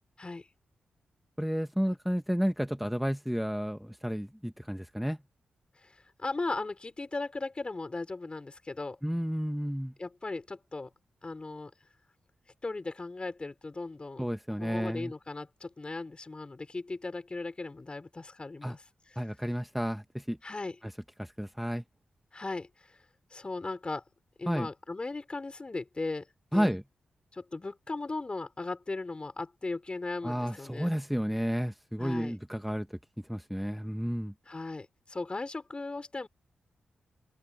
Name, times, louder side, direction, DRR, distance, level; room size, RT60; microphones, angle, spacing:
voice 1, 1.4-5.2 9.0-9.9 14.2-15.1 18.6-18.7 19.2-20.4 21.2-21.8 24.5-24.7 26.5-26.8 30.2-32.9 33.3-34.3, equal, ahead, 1.7 m, -31 dB
voice 2, 5.8-9.0 10.0-10.9 11.2-11.7 12.6-14.3 14.6-19.2 20.4-20.8 22.3-23.0 23.3-24.0 24.4-26.3 26.5-26.7 27.3-30.9 32.0-32.3 34.5-36.3, left 3 dB, 35° left, 5.4 m, -37 dB
supercardioid pair, 45°, 3 cm